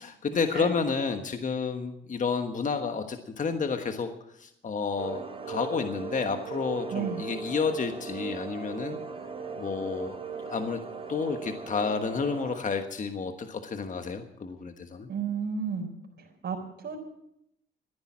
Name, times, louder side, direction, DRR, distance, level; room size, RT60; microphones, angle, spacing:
voice 1, 0.0-4.1 4.4-5.2 5.5-9.0 9.6-10.2 10.5-10.8 11.1-15.1, left 5 dB, 40° left, 7 dB, 1.3 m, -30 dB
sound 1, 5.0-12.6, right 5 dB, 30° right, 3.1 m, -38 dB
voice 2, 6.9-7.2 15.1-15.9 16.2-17.0, right 6 dB, 60° right, -1 dB, 4.2 m, -33 dB
14.5 x 10.5 x 7.4 m, 0.77 s
cardioid pair, 90°, 20 cm